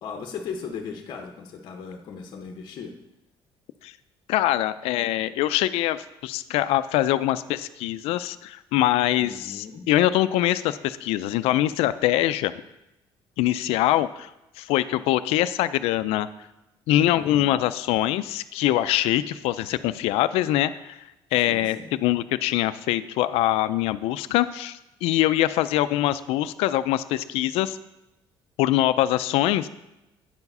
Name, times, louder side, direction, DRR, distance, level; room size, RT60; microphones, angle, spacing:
voice 1, 0.0-2.9 9.2-9.8 17.1-17.5 21.4-21.9, left 6 dB, 50° left, 2 dB, 0.7 m, -37 dB
voice 2, 4.3-6.0 6.2-12.5 13.4-14.3 14.6-16.3 16.9-21.0 21.3-27.8 28.6-29.7, left 14 dB, 85° left, 14 dB, 0.4 m, -23 dB
8.7 x 4.7 x 5.4 m, 0.94 s
cardioid pair, 160°, 10 cm